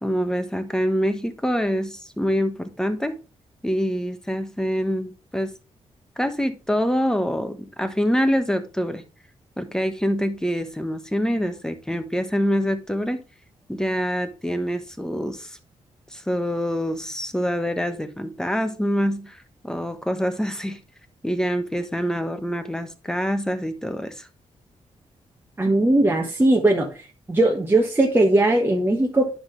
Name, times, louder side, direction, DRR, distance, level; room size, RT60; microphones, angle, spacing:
voice 1, 0.0-3.2 3.6-5.5 6.2-9.0 9.6-13.2 13.7-15.6 16.1-20.8 21.2-24.3, equal, 5° left, 8 dB, 1.2 m, -25 dB
voice 2, 25.6-26.9 27.3-29.3, right 2 dB, 20° right, 1 dB, 1.3 m, -19 dB
9.7 x 5.8 x 3.2 m, 0.32 s
cardioid pair, 80°, 12 cm